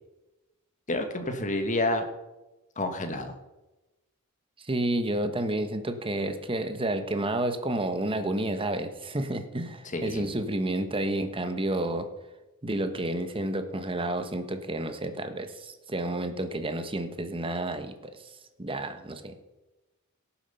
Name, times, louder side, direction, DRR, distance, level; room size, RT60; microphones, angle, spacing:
voice 1, 0.9-2.0 2.8-3.3 9.9-10.3, left 2 dB, 35° left, 6 dB, 1.5 m, -29 dB
voice 2, 4.6-12.1 12.6-19.4, right 1 dB, 25° right, 8 dB, 1.1 m, -30 dB
17.5 x 7.3 x 5.6 m, 1.0 s
head